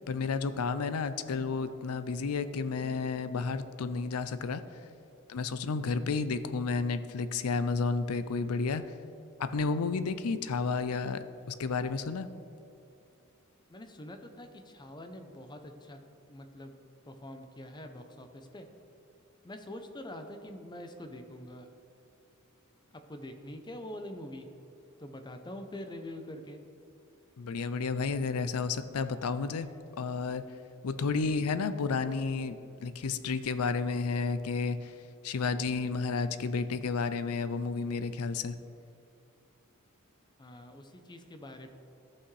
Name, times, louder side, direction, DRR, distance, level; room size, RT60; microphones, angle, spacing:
voice 1, 0.1-4.6 5.3-8.8 9.4-11.2 11.5-12.3 27.4-29.7 30.0-30.4 30.8-34.9 35.2-38.5, left 4 dB, 80° left, 12 dB, 0.5 m, -31 dB
voice 2, 13.7-16.0 16.3-16.8 17.0-18.7 19.4-21.7 23.1-24.5 25.0-26.6 40.4-41.8, left 1 dB, 20° left, 6 dB, 0.6 m, -45 dB
14.0 x 5.8 x 3.2 m, 2.7 s
head